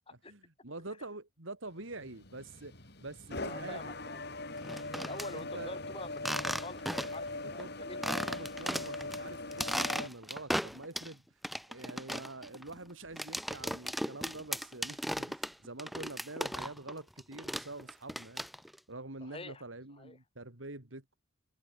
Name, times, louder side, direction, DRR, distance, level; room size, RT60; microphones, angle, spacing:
voice 1, 0.3-4.0 5.3-5.7 7.6-7.8 8.1-11.4 11.7-18.5 18.9-21.2, right 2 dB, 80° right, 3.4 m, -46 dB
sound 1, 1.8-10.1, left 2 dB, 55° left, 6.7 m, -41 dB
voice 2, 3.3-4.3 5.0-8.1 11.9-12.0 19.3-19.6 20.0-20.2, left 2 dB, 30° left, 5.3 m, -46 dB
sound 2, 4.6-5.3 6.2-7.3 7.6-7.7 8.0-9.2 9.5-11.1 11.4-16.9 17.2-18.8, equal, ahead, 3.6 m, -36 dB
head